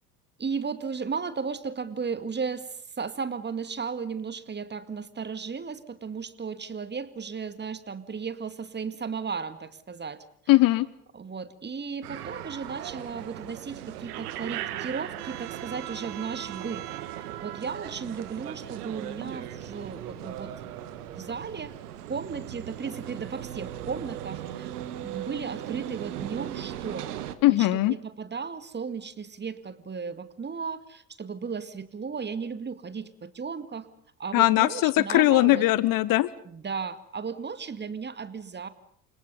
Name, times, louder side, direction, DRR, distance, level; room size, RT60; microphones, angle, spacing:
voice 1, 0.4-10.2 11.1-16.8 17.4-20.7 21.1-21.7 22.1-24.7 25.0-27.2 27.5-33.9 34.2-35.7 36.4-38.7, right 5 dB, 20° right, 12 dB, 2.0 m, -35 dB
voice 2, 10.5-10.9 27.4-27.9 34.3-36.3, left 17 dB, 40° left, 19 dB, 1.0 m, -20 dB
sound 1, 12.0-27.4, right 12 dB, 65° right, 1.8 m, -38 dB
29.0 x 25.5 x 5.5 m, 0.63 s
figure-of-eight pair, 65°, 49 cm